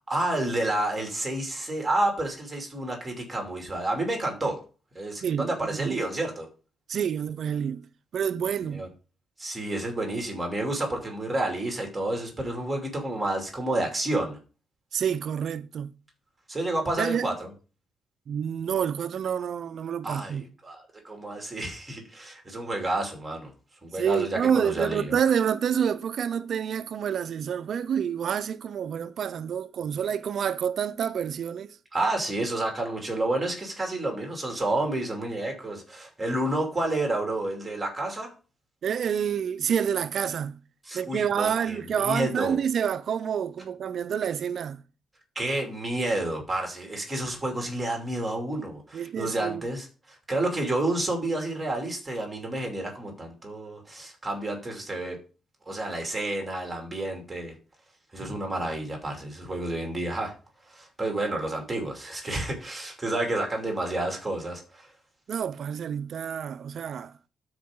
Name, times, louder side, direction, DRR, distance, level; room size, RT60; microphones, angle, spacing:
voice 1, 0.1-4.6 4.9-6.5 8.7-8.9 9.4-14.4 16.5-17.5 20.0-23.5 23.8-25.2 31.9-38.3 40.9-42.6 45.3-55.2 55.7-57.5 58.1-60.3 60.7-64.9, right 2 dB, 15° right, 2.7 m, -30 dB
voice 2, 5.2-6.0 6.9-7.8 8.1-8.9 14.9-15.9 17.0-17.3 18.3-20.4 23.9-31.8 38.8-40.6 40.9-44.8 48.9-49.6 65.3-67.1, right 8 dB, 55° right, 0.5 m, -28 dB
12.5 x 4.7 x 3.7 m
cardioid pair, 135°, 0 cm